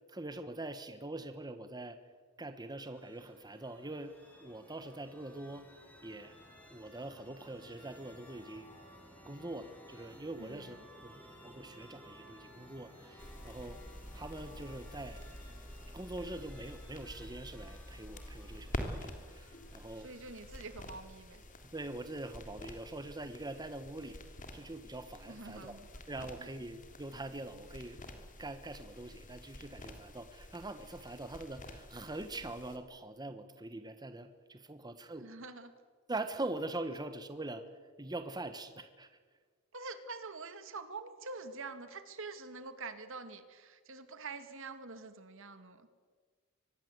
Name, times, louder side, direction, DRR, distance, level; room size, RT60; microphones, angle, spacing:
voice 1, 0.1-2.0 2.4-4.2 4.4-5.7 6.0-6.3 6.7-8.9 9.3-13.8 14.1-15.2 15.9-20.1 21.7-24.2 24.5-35.3 36.1-37.7 38.0-39.1, right 2 dB, 20° right, 9 dB, 1.2 m, -43 dB
sound 1, 2.5-20.7, equal, 10° left, 5.4 m, -57 dB
voice 2, 10.4-10.8 20.0-21.5 25.3-25.9 26.2-26.5 35.2-35.7 39.7-46.0, right 3 dB, 65° right, 10 dB, 2.2 m, -46 dB
sound 2, 13.2-32.8, left 1 dB, 40° left, 3.2 m, -48 dB
25.0 x 20.0 x 8.2 m, 1.5 s
head